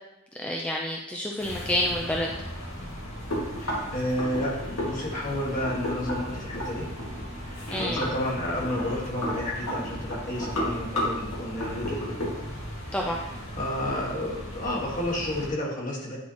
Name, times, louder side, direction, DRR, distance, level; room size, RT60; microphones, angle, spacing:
voice 1, 0.4-2.3 7.7-8.0 12.9-13.2, left 1 dB, 5° left, -1 dB, 0.4 m, -28 dB
sound 1, 1.4-15.5, equal, 75° left, 1.9 m, -34 dB
voice 2, 3.6-6.9 7.4-12.2 12.9-16.2, left 1 dB, 40° left, -3 dB, 1.5 m, -31 dB
9.4 x 4.2 x 2.9 m, 0.95 s
head